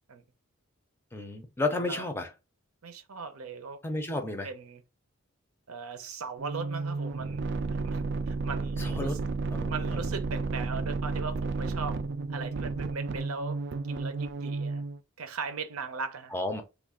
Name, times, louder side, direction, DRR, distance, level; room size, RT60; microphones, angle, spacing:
voice 1, 1.1-2.3 3.8-4.5 8.8-9.2 9.5-10.1 16.3-16.6, left 2 dB, 10° left, 0.4 m, -32 dB
voice 2, 1.7-2.0 2.8-3.8 4.1-4.8 5.7-7.4 7.7-9.2 9.7-12.0 12.3-13.6 13.9-14.8 15.2-16.3, right 5 dB, 85° right, 0.7 m, -39 dB
sound 1, 6.4-15.0, right 3 dB, 55° right, 0.3 m, -32 dB
3.3 x 2.3 x 3.6 m
head